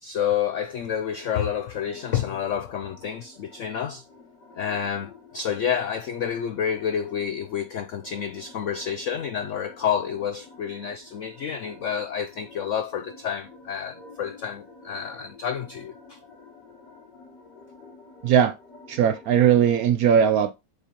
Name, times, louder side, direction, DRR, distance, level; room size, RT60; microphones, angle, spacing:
voice 1, 0.0-4.0 4.6-16.2, left 8 dB, 80° left, 0.6 m, -29 dB
sound 1, 1.2-19.9, left 3 dB, 65° left, 3.3 m, -49 dB
voice 2, 18.2-18.5 18.9-20.5, right 8 dB, 70° right, 0.9 m, -19 dB
7.9 x 6.4 x 2.9 m
omnidirectional pair, 2.0 m